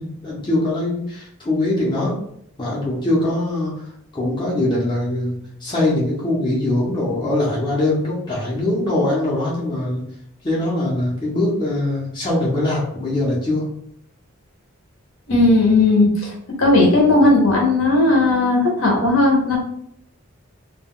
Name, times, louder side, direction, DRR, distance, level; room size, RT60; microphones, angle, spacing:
voice 1, 0.0-2.1 2.6-3.9 4.1-10.0 10.4-13.6, left 1 dB, 20° left, -6 dB, 0.6 m, -22 dB
voice 2, 15.3-16.3 16.6-19.6, left 2 dB, 60° left, -1 dB, 0.8 m, -16 dB
2.2 x 2.2 x 3.6 m, 0.70 s
head